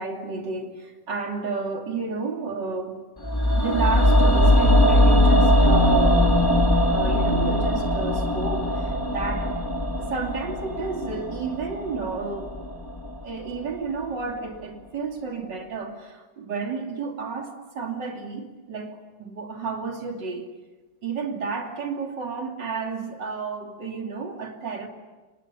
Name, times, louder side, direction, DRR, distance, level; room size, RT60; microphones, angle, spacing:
voice 1, 0.0-3.1 3.6-6.3 6.9-9.6 10.0-12.5 13.2-20.6 21.0-24.9, right 4 dB, 70° right, 3.5 m, -31 dB
sound 1, 3.2-13.3 13.6-13.7, equal, 10° left, 2.1 m, -20 dB
29.5 x 26.0 x 6.9 m
omnidirectional pair, 2.0 m